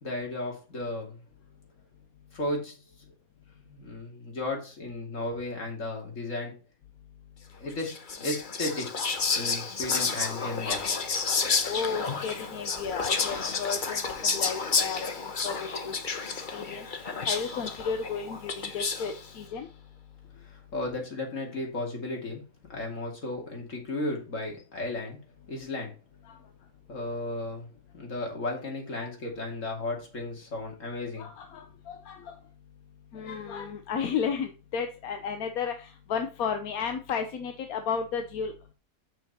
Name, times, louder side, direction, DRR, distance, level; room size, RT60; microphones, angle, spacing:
voice 1, 0.0-1.2 2.3-2.8 3.7-6.5 7.5-8.9 9.3-10.8 20.3-22.4 22.7-25.2 25.5-25.9 26.9-27.7 27.9-31.3 32.2-32.3, left 2 dB, 60° left, 0 dB, 2.9 m, -34 dB
Whispering, 7.8-19.2, left 4 dB, 40° left, 1.0 m, -30 dB
voice 2, 11.6-16.2 16.5-19.7 26.3-26.4 27.0-27.2 29.0-29.1 31.2-32.5 33.1-38.5, left 6 dB, 85° left, 6 dB, 1.3 m, -33 dB
7.2 x 6.2 x 4.1 m, 0.33 s
omnidirectional pair, 1.5 m